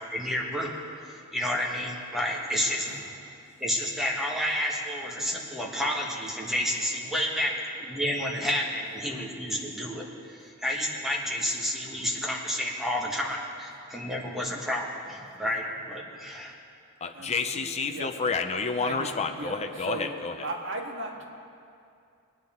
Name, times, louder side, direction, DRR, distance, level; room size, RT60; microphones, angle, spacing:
voice 1, 0.0-2.9 3.6-7.5 7.8-16.5, equal, ahead, -2 dB, 1.5 m, -30 dB
voice 2, 17.0-20.5, left 4 dB, 30° left, 6 dB, 0.5 m, -30 dB
voice 3, 17.9-18.3 18.8-20.1 20.4-21.3, right 2 dB, 60° right, 0 dB, 1.7 m, -36 dB
20.0 x 9.6 x 3.7 m, 2.5 s
head